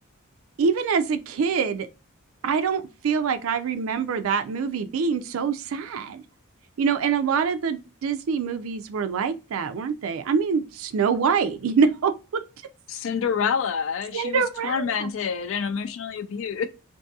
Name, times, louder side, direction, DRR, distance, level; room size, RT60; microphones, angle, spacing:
voice 1, 0.6-1.9 2.4-6.2 6.8-12.4 14.1-15.1, right 6 dB, 70° right, 0.4 m, -25 dB
voice 2, 12.9-16.7, left 6 dB, 65° left, 0.4 m, -27 dB
2.6 x 2.6 x 2.2 m
head